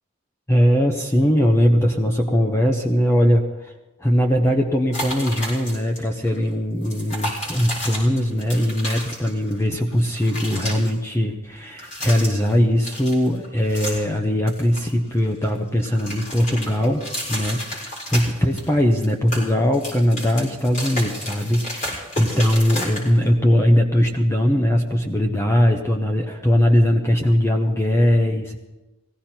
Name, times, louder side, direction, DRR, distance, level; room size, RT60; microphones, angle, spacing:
voice 1, 0.5-3.7 4.0-28.6, equal, 15° left, 3 dB, 0.9 m, -20 dB
sound 1, 4.9-6.0 6.2-6.4 6.8-9.6 9.9-10.9 11.7-12.5 12.8-14.2 14.5-15.5 15.8-18.7 19.0-23.3, left 1 dB, 35° left, 5.4 m, -32 dB
19.0 x 16.0 x 4.5 m, 1.0 s
head